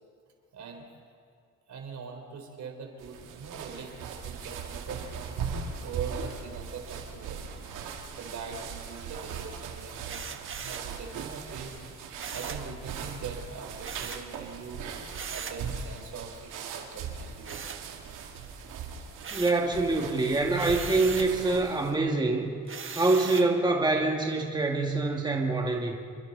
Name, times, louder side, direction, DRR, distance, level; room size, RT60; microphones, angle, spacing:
voice 1, 0.5-0.9 1.7-5.4 5.8-7.5 8.2-11.8 12.3-14.8 15.3-17.8, right 5 dB, 65° right, 3 dB, 3.8 m, -42 dB
sound 1, 3.0-22.0, right 6 dB, 90° right, 2.3 m, -39 dB
sound 2, 10.1-10.9 12.2-12.7 13.8-14.3 15.1-15.7 17.4-18.3 18.7-19.7 20.5-21.4 22.7-23.6, right 6 dB, 40° right, 1.4 m, -39 dB
voice 2, 19.3-22.5 22.9-26.0, right 3 dB, 15° right, 0 dB, 2.3 m, -25 dB
28.0 x 23.5 x 4.1 m, 2.1 s
cardioid pair, 90°, 30 cm